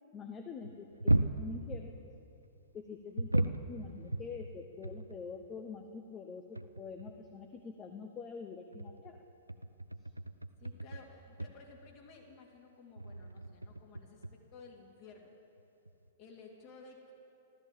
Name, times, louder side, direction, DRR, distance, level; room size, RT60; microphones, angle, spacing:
voice 1, 0.1-1.9 2.7-9.2, left 5 dB, 25° left, 4 dB, 0.9 m, -45 dB
sound 1, 0.6-2.1 3.2-5.2 5.5-5.6 6.2-6.3 6.5-7.2 8.5-11.1 11.4-11.7 13.0-14.3 15.6-15.7 15.9-16.1, right 1 dB, 90° right, 0.5 m, -35 dB
voice 2, 10.6-14.2 14.5-15.3 16.2-17.1, left 4 dB, 40° left, -1 dB, 3.1 m, -55 dB
13.5 x 13.0 x 7.5 m, 2.8 s
figure-of-eight pair, 105°, 0 cm